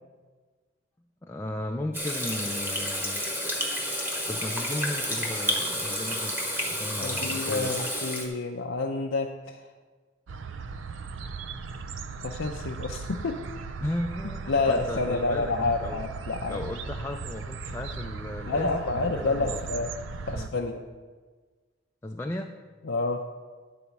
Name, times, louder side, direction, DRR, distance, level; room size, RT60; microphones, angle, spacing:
voice 1, 1.2-3.2 4.3-6.4 6.7-7.8 13.8-16.0 16.5-19.8 20.3-20.5 22.0-22.5, left 1 dB, 15° left, 3 dB, 0.4 m, -35 dB
Water tap faucet / Sink (filling or washing), 1.9-8.3, equal, 10° right, 1.3 m, -30 dB
voice 2, 7.0-9.7 12.2-13.4 14.5-16.6 18.5-19.9 20.3-20.8 22.8-23.2, left 3 dB, 80° left, 1 dB, 0.5 m, -29 dB
sound 1, 10.3-20.5, right 4 dB, 80° right, 0.5 m, -37 dB
10.0 x 4.2 x 7.0 m, 1.4 s
head